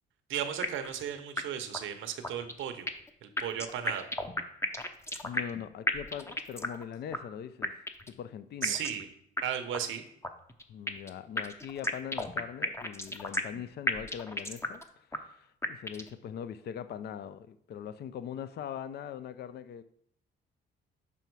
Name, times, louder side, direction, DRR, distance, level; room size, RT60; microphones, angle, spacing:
voice 1, 0.3-2.9 3.2-4.1 8.6-9.1 9.4-10.0, right 9 dB, 80° right, 7 dB, 0.8 m, -35 dB
sound 1, 0.6-1.0 1.4-1.5 1.7-1.8 2.2-3.1 3.4-5.6 5.9-6.8 7.1-7.2 7.6-8.1 8.6-9.0 9.4-9.5 9.7-9.8 10.2-11.1 11.4-13.6 13.9-14.8 15.1-15.2 15.6-16.1, left 1 dB, 15° left, 0.7 m, -33 dB
voice 2, 5.2-8.8 10.7-19.8, left 9 dB, 55° left, 13 dB, 0.4 m, -41 dB
5.7 x 5.3 x 4.6 m, 0.69 s
cardioid pair, 90°, 20 cm